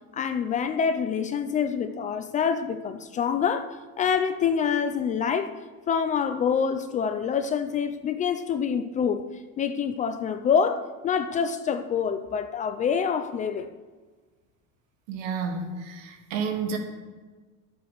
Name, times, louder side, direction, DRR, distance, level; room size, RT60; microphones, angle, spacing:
voice 1, 0.1-5.5 5.9-9.2 9.6-13.7, left 7 dB, 20° left, 0.4 m, -26 dB
voice 2, 15.1-16.8, right 5 dB, 80° right, 2.4 m, -30 dB
11.5 x 7.9 x 6.6 m
cardioid pair, 160°, 38 cm